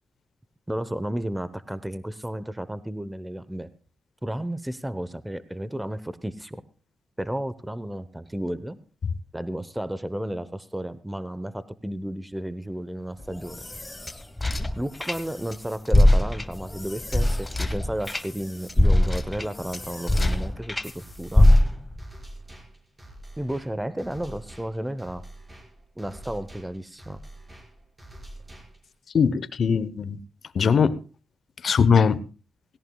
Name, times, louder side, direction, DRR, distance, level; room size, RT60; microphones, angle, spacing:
voice 1, 0.7-3.7 4.2-6.6 7.2-8.8 9.3-13.6 14.8-21.5 23.4-25.2 26.0-27.2, right 1 dB, 10° right, 14 dB, 0.9 m, -33 dB
sound 1, 13.2-15.6 15.9-20.9 21.3-22.0, left 1 dB, 15° left, 1.3 m, -22 dB
sound 2, 21.0-29.0, right 1 dB, 25° right, 5.8 m, -46 dB
voice 2, 29.1-30.2 30.5-31.0 31.6-32.2, left 6 dB, 60° left, 15 dB, 0.9 m, -20 dB
17.5 x 17.0 x 2.3 m, 0.35 s
cardioid pair, 65°, 0 cm